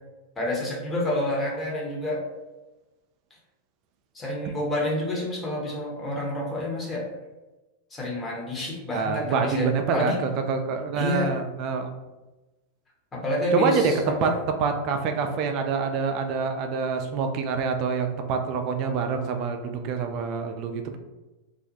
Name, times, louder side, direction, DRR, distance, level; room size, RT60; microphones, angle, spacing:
voice 1, 0.4-2.2 4.1-7.1 7.9-10.2 10.9-11.3 13.1-14.4, left 1 dB, 20° left, -3 dB, 0.8 m, -28 dB
voice 2, 8.9-11.9 13.5-14.3 14.6-21.0, right 5 dB, 50° right, 6 dB, 0.3 m, -26 dB
2.4 x 2.1 x 2.7 m, 1.1 s
hypercardioid pair, 95°, 0 cm